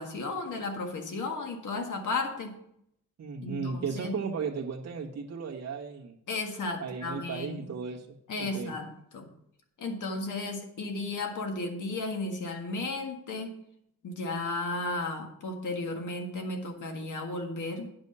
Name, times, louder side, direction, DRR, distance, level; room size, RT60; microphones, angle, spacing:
voice 1, 0.0-2.6 3.4-4.2 6.3-7.7 8.3-9.3 9.8-13.6 14.0-17.9, left 3 dB, 60° left, 4 dB, 1.8 m, -34 dB
voice 2, 3.2-6.2 6.8-8.1 8.4-8.7, right 5 dB, 45° right, -3 dB, 1.4 m, -35 dB
9.7 x 6.3 x 5.5 m, 0.75 s
wide cardioid pair, 160°, 34 cm